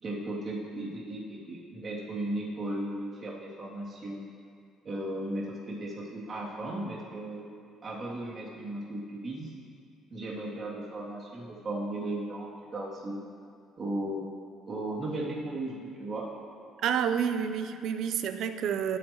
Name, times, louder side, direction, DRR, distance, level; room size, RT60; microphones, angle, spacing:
voice 1, 0.0-4.2 4.8-7.5 7.8-9.5 10.1-13.2 13.8-14.3 14.7-16.3, right 1 dB, 35° right, -5 dB, 2.9 m, -36 dB
voice 2, 16.8-19.0, right 8 dB, 65° right, 9 dB, 0.7 m, -29 dB
19.0 x 8.7 x 3.2 m, 2.4 s
cardioid pair, 105°, 0 cm